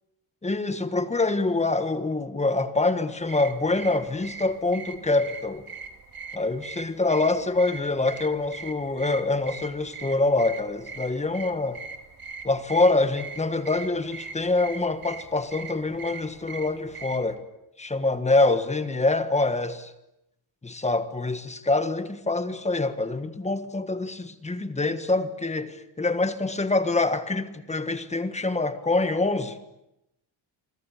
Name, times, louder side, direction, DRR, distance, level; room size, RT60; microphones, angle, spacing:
voice 1, 0.4-5.6 6.3-11.8 12.4-17.4 17.8-19.9 20.6-29.6, left 2 dB, 15° left, 1.5 m, -25 dB
sound 1, 3.2-17.3, right 5 dB, 50° right, 2.6 m, -41 dB
27.0 x 24.0 x 8.6 m
wide cardioid pair, 175°, 47 cm